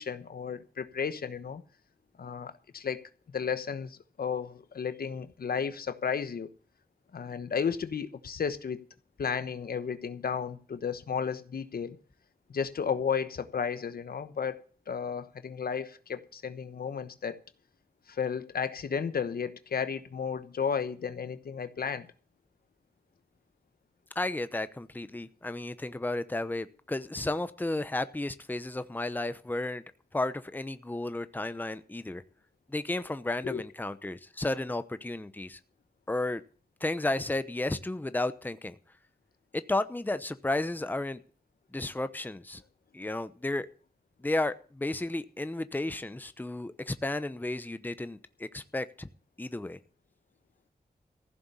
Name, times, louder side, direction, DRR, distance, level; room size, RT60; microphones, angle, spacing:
voice 1, 0.0-1.6 2.2-3.0 3.3-6.5 7.1-8.8 9.2-12.0 12.5-17.4 18.1-22.1 33.4-33.6, left 6 dB, 75° left, 1.1 m, -33 dB
voice 2, 24.1-29.8 30.1-32.2 32.7-35.6 36.1-36.4 36.8-38.8 39.5-41.2 41.7-42.6 42.9-43.7 44.2-49.1 49.4-49.8, left 2 dB, 10° left, 0.8 m, -33 dB
15.0 x 6.9 x 8.3 m
wide cardioid pair, 105°, 16 cm